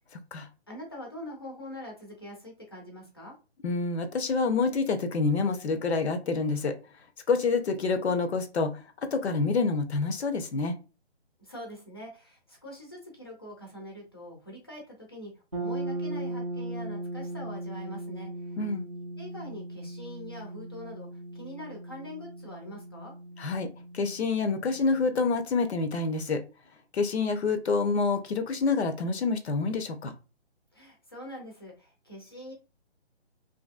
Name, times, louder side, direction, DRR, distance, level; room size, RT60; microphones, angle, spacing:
voice 1, 0.7-3.3 11.4-18.6 19.2-23.1 30.7-32.5, left 1 dB, 20° left, -1 dB, 0.5 m, -44 dB
voice 2, 3.6-6.7 7.3-10.7 18.6-18.9 23.4-23.7 23.9-26.4 26.9-30.1, left 4 dB, 70° left, 7 dB, 0.6 m, -27 dB
sound 1, 15.5-25.3, right 2 dB, 30° right, 0.4 m, -38 dB
2.7 x 2.5 x 2.4 m, 0.32 s
hypercardioid pair, 165°, 34 cm